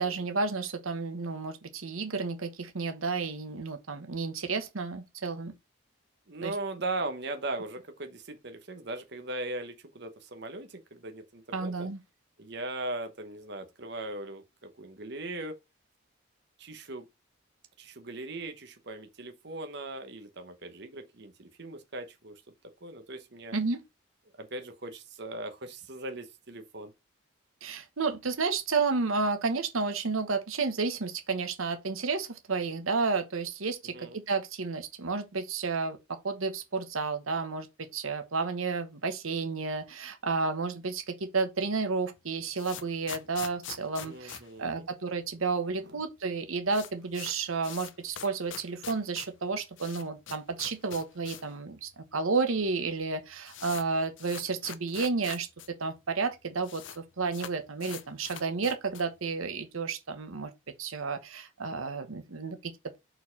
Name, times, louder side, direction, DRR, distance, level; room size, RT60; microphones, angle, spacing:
voice 1, 0.0-5.5 6.4-6.5 11.5-12.0 23.5-23.8 27.6-37.7 37.9-55.5 55.8-60.5 60.8-63.0, right 4 dB, 80° right, 1.0 m, -31 dB
voice 2, 6.3-11.7 12.4-15.6 16.6-17.1 17.8-22.3 22.8-23.5 24.4-26.9 33.9-34.2 44.0-44.9 45.8-46.0, right 2 dB, 55° right, 1.0 m, -39 dB
sound 1, 42.2-45.4 45.7-45.8 46.0-46.1 46.4-51.6 51.9-52.0 52.7-52.8 53.0-55.7 56.0-56.1 56.2-57.0 57.3-59.2, left 9 dB, 65° left, 0.6 m, -44 dB
4.5 x 4.4 x 5.7 m
head